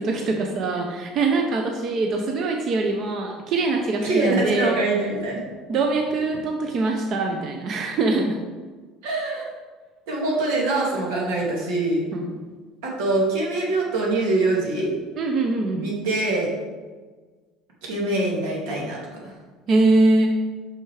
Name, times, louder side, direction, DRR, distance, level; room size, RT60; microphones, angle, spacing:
voice 1, 0.0-4.8 5.7-8.4 12.1-12.3 15.2-15.8 19.7-20.4, right 3 dB, 40° right, 2 dB, 0.7 m, -23 dB
voice 2, 4.0-5.4 9.0-9.5 10.1-12.0 12.8-14.9 15.8-16.5 17.8-19.0, right 2 dB, 85° right, -3 dB, 2.4 m, -24 dB
5.9 x 5.9 x 4.8 m, 1.4 s
cardioid pair, 165°, 0 cm